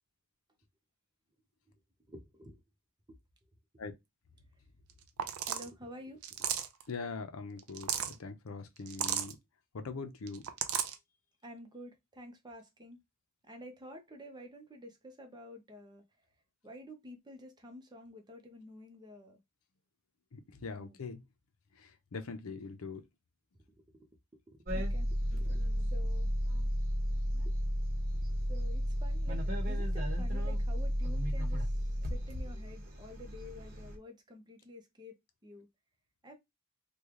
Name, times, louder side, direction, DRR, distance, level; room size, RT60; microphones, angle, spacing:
voice 1, 2.1-2.6 5.5-6.5 11.4-13.0 13.4-16.0 16.6-19.4 20.7-21.0 23.8-25.6 25.9-26.3 28.5-31.8 32.0-35.2 35.4-35.7 36.2-36.4, left 1 dB, 20° right, 0.7 m, -50 dB
sound 1, 4.9-5.0 5.2-5.7 6.2-6.8 7.6-8.1 8.9-9.3 10.3-10.9, right 9 dB, 80° right, 0.5 m, -34 dB
voice 2, 6.9-9.4 9.7-10.4 20.3-21.2 21.8-23.1, left 4 dB, 75° left, 0.6 m, -42 dB
sound 2, 24.7-34.0, equal, 45° right, 1.0 m, -33 dB
3.1 x 2.3 x 3.6 m
head